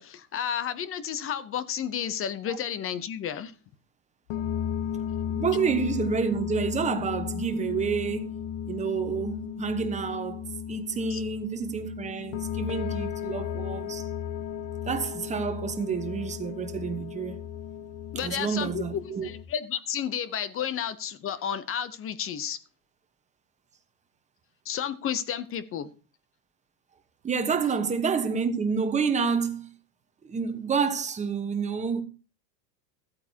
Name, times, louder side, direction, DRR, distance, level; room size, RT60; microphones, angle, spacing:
voice 1, 0.0-3.5 11.1-11.2 18.1-22.6 24.6-25.9, left 9 dB, 30° left, 0.7 m, -32 dB
sound 1, 4.3-19.4, left 9 dB, 55° left, 1.1 m, -34 dB
voice 2, 5.3-8.3 8.7-14.1 14.9-17.4 18.2-19.3 27.2-29.7 30.2-32.0, right 6 dB, 15° right, 1.1 m, -29 dB
14.0 x 8.7 x 2.8 m
supercardioid pair, 130°, 48 cm